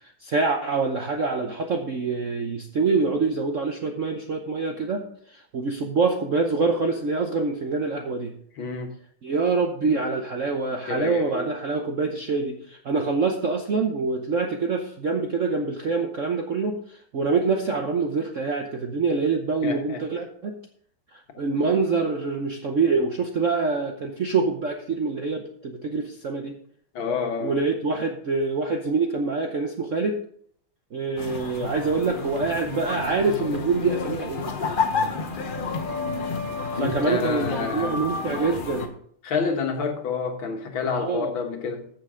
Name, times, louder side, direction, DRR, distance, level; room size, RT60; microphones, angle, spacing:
voice 1, 0.0-8.3 9.2-20.6 21.1-26.6 27.4-30.2 30.9-34.5 36.7-38.9 41.0-41.3, right 4 dB, 55° right, 0.8 m, -25 dB
voice 2, 8.6-8.9 10.9-11.5 19.6-20.0 26.9-27.6 36.8-38.0 39.2-41.9, left 5 dB, 65° left, 2.1 m, -28 dB
sound 1, 31.2-38.9, left 4 dB, 50° left, 0.6 m, -30 dB
14.5 x 6.6 x 3.8 m
omnidirectional pair, 2.4 m